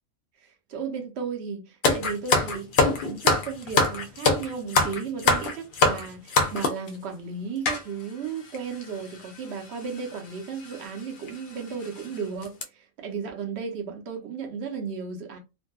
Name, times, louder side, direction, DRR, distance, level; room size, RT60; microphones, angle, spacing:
voice 1, 0.4-15.4, right 5 dB, 60° right, 0.9 m, -35 dB
sound 1, 1.8-6.9 7.7-7.8 8.5-8.6 8.8-9.0 10.0-10.2 10.6-10.8 11.3-11.4 11.8-12.0 12.4-12.6, left 3 dB, 65° left, 0.5 m, -23 dB
2.6 x 2.5 x 2.2 m
omnidirectional pair, 1.4 m